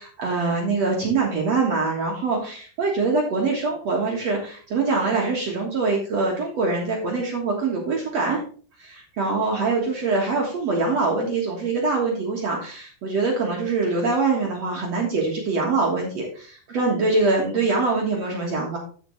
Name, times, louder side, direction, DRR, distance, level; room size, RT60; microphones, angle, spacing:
voice 1, 0.0-8.4 8.8-18.8, right 3 dB, 55° right, -1 dB, 2.0 m, -24 dB
14.0 x 5.2 x 3.1 m, 0.41 s
omnidirectional pair, 4.7 m